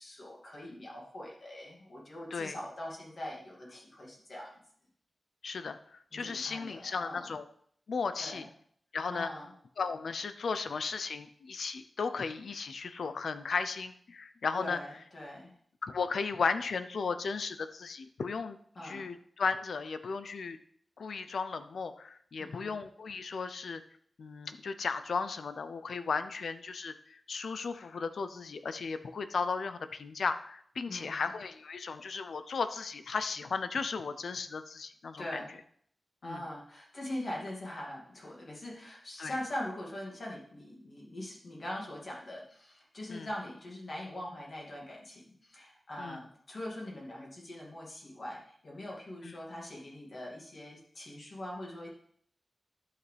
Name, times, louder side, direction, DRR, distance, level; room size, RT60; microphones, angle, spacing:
voice 1, 0.0-4.6 6.1-7.4 8.2-8.5 9.1-9.5 14.6-15.5 18.7-19.1 22.4-22.7 30.9-31.3 35.2-35.5 36.2-51.9, left 1 dB, 45° left, -3 dB, 2.5 m, -42 dB
voice 2, 5.4-7.4 7.9-8.5 8.9-9.3 9.8-14.8 15.8-18.6 18.8-20.6 21.0-23.8 24.2-35.4 36.2-36.4 39.2-39.4 43.1-43.3 46.0-46.2 49.2-49.3, left 5 dB, 75° left, 11 dB, 0.6 m, -35 dB
11.0 x 6.7 x 3.4 m, 0.64 s
wide cardioid pair, 155°, 0 cm